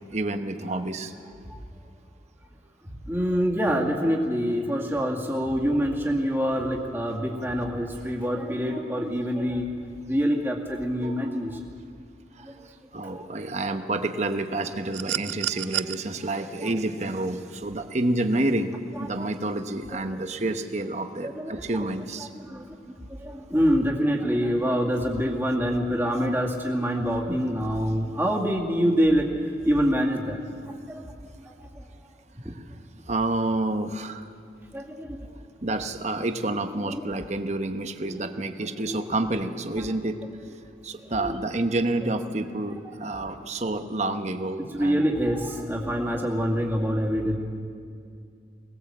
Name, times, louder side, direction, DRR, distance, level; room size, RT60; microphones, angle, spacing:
voice 1, 0.1-1.1 11.0-11.2 12.4-22.3 33.1-34.3 35.6-40.2 40.8-45.0, right 2 dB, 40° right, 7 dB, 1.0 m, -29 dB
voice 2, 3.1-9.7 10.1-11.6 12.4-12.6 13.1-13.3 16.6-16.7 18.9-19.3 19.9-20.0 21.2-21.6 22.2-29.3 29.6-30.4 30.9-31.0 32.4-32.5 34.7-35.2 36.8-37.0 38.0-38.2 38.8-39.0 39.8-39.9 41.2-41.3 42.8-43.2 44.7-47.4, equal, 10° right, -2 dB, 2.2 m, -26 dB
sound 1, 14.9-16.0 17.5-17.6, right 14 dB, 80° right, 0.4 m, -29 dB
21.5 x 19.5 x 7.6 m, 2.3 s
head